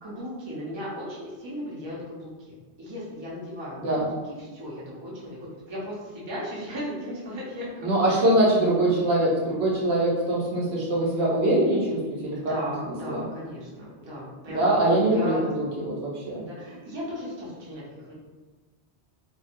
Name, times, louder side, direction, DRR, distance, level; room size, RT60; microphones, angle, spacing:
voice 1, 0.0-5.4 5.7-8.3 12.4-15.4 16.3-18.1, equal, 30° right, -7 dB, 0.6 m, -36 dB
voice 2, 7.8-12.5 13.1-13.2 14.5-16.4, right 1 dB, 75° right, -5 dB, 1.0 m, -23 dB
2.6 x 2.2 x 2.5 m, 1.3 s
omnidirectional pair, 1.2 m